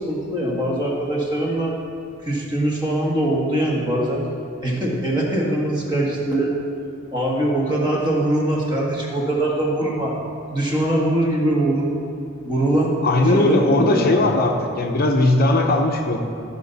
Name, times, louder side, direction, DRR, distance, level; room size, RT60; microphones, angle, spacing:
voice 1, 0.0-1.7 2.3-4.2 4.6-6.5 7.1-10.1 10.5-11.9 12.5-13.0 13.3-14.2, right 1 dB, 20° right, -3 dB, 1.6 m, -22 dB
voice 2, 13.0-16.2, left 2 dB, 50° left, 2 dB, 0.8 m, -18 dB
14.5 x 5.8 x 4.1 m, 2.5 s
head